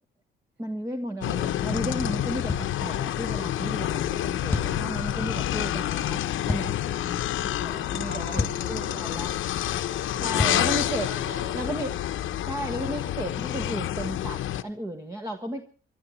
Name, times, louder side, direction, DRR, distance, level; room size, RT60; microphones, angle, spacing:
voice 1, 0.6-6.8 7.6-9.3 10.2-11.1 11.5-11.9 12.5-15.6, equal, 15° right, 5 dB, 1.5 m, -34 dB
sound 1, 1.2-14.6, left 12 dB, 70° left, 1.0 m, -28 dB
sound 2, 2.5-2.7 4.5-4.8 6.5-6.7 8.4-8.7 10.4-10.7, left 3 dB, 10° left, 2.1 m, -28 dB
voice 2, 5.1-5.5 6.8-9.5 10.1-11.7 12.0-12.2, right 1 dB, 55° right, 5 dB, 6.2 m, -44 dB
27.0 x 11.5 x 4.4 m, 0.36 s
cardioid pair, 115°, 21 cm